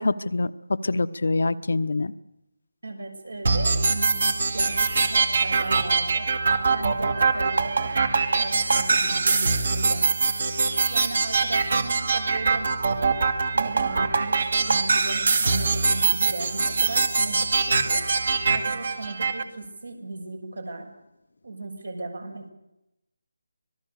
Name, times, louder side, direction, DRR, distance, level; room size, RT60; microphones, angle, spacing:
voice 1, 0.0-2.1, left 3 dB, 65° left, 14 dB, 1.1 m, -25 dB
voice 2, 2.8-6.3 6.7-10.1 10.9-12.7 13.5-18.0 18.5-20.9 21.4-22.5, right 2 dB, 80° right, 4 dB, 6.6 m, -37 dB
sound 1, 3.4-19.4, right 4 dB, 55° right, 2.1 m, -23 dB
26.0 x 19.5 x 6.8 m, 0.90 s
figure-of-eight pair, 160°, 0 cm